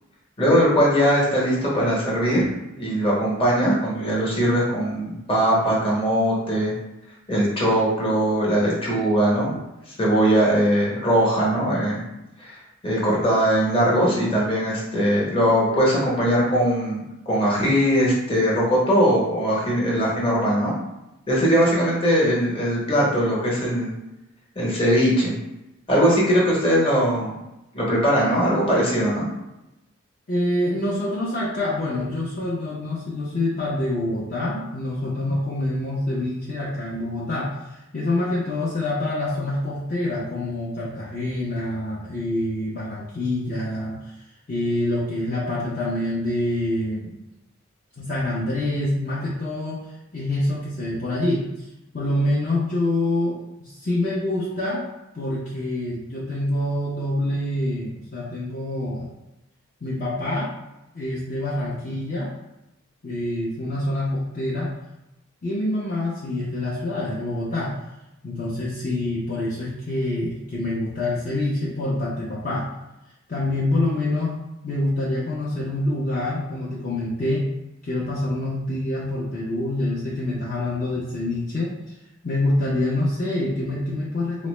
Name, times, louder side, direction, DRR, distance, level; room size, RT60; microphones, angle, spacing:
voice 1, 0.4-2.4 2.7-6.7 7.3-9.6 9.9-12.1 12.4-20.7 21.3-23.9 24.5-25.4 25.9-27.3 27.7-29.3, equal, 25° left, -5 dB, 1.0 m, -20 dB
voice 2, 30.3-37.6 37.9-44.1 44.5-47.1 48.0-51.7 51.9-54.8 55.1-59.1 59.8-60.5 60.9-62.3 63.0-64.7 65.4-67.8 68.2-72.7 73.3-74.4 74.6-77.5 77.8-81.8 82.2-84.5, left 1 dB, 40° left, -7 dB, 0.6 m, -26 dB
4.0 x 2.0 x 3.1 m, 0.94 s
head